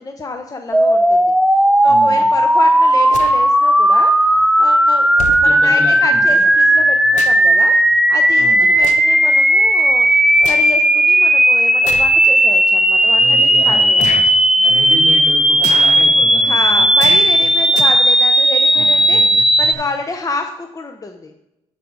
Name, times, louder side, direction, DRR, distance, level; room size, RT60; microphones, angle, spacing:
voice 1, 0.0-1.3 1.8-4.1 4.6-7.7 8.1-10.1 10.5-14.0 16.4-21.3, left 3 dB, 30° left, 5 dB, 0.7 m, -28 dB
sound 1, 0.7-19.7, right 1 dB, 5° right, 0.5 m, -13 dB
voice 2, 1.8-2.2 5.4-6.4 8.4-8.7 13.2-14.3 14.6-16.9 18.7-19.4, left 2 dB, 65° left, 1 dB, 2.3 m, -30 dB
sound 2, 3.1-3.4 4.4-4.5 5.2-5.4 6.7-7.5 7.9-8.1 8.8-9.2 9.6-10.7 11.8-12.1 12.9-13.0 13.9-14.3 15.6-16.0 17.0-17.4 17.7-17.8, left 7 dB, 80° left, 0.8 m, -29 dB
11.5 x 4.8 x 4.0 m, 0.89 s
cardioid pair, 80°, 12 cm